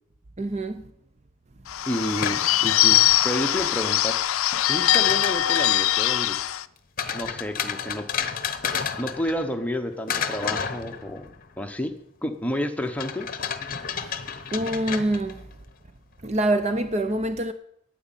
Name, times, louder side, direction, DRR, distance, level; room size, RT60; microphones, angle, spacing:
voice 1, 0.4-0.8 14.0-14.2 14.5-15.4 16.2-17.5, right 1 dB, 30° right, 0.5 m, -25 dB
Bird / Bell, 1.7-6.6, left 13 dB, 75° left, 0.5 m, -22 dB
voice 2, 1.9-4.2 4.7-6.4 7.1-8.1 9.0-11.3 11.6-13.3, equal, 5° left, 0.9 m, -30 dB
sound 1, 2.2-3.5 4.5-5.8 7.0-9.7 10.1-11.4 13.0-15.5, left 7 dB, 40° left, 0.9 m, -32 dB
9.4 x 8.4 x 9.0 m
head